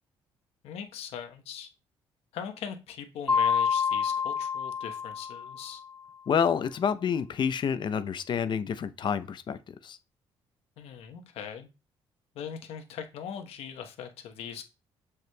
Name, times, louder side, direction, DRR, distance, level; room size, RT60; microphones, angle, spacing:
voice 1, 0.6-1.7 2.3-5.8 10.8-11.7 12.3-14.6, left 8 dB, 75° left, 1.1 m, -40 dB
Mallet percussion, 3.3-5.9, left 6 dB, 15° left, 1.2 m, -28 dB
voice 2, 6.3-10.0, left 7 dB, 50° left, 0.7 m, -28 dB
7.1 x 6.5 x 2.3 m
cardioid pair, 80°, 10 cm